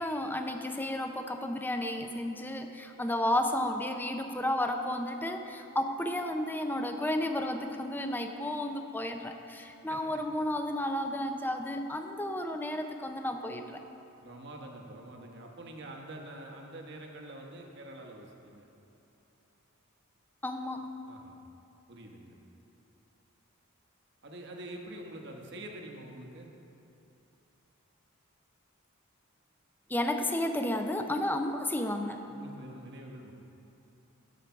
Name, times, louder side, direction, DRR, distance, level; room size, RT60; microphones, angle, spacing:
voice 1, 0.0-13.8 20.4-20.9 29.9-32.2, left 1 dB, 10° left, 5 dB, 0.5 m, -32 dB
voice 2, 14.2-18.7 21.0-21.4 21.9-22.3 24.2-26.5 32.3-33.3, right 1 dB, 55° right, 1 dB, 1.1 m, -46 dB
12.5 x 4.9 x 5.8 m, 2.9 s
head